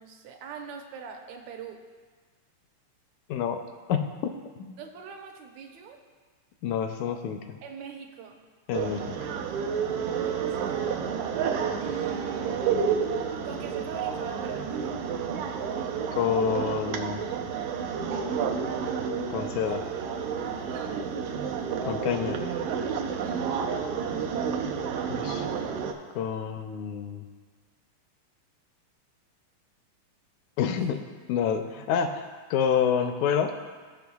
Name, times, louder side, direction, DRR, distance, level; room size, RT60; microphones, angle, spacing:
voice 1, 0.0-1.8 4.8-6.0 7.6-8.4 10.0-10.9 11.8-12.8 13.4-15.0 20.6-21.0 23.1-23.5 30.7-31.0, right 6 dB, 75° right, 3 dB, 2.0 m, -42 dB
voice 2, 3.3-3.6 3.9-4.3 4.6-4.8 6.6-7.6 8.7-9.2 16.2-17.2 19.3-19.8 21.9-22.4 25.1-25.5 26.2-27.3 30.6-31.0 31.3-33.5, left 7 dB, 80° left, 6 dB, 1.8 m, -28 dB
sound 1, 8.7-25.9, right 6 dB, 90° right, 1.3 m, -30 dB
17.5 x 5.9 x 2.3 m, 1.5 s
omnidirectional pair, 3.6 m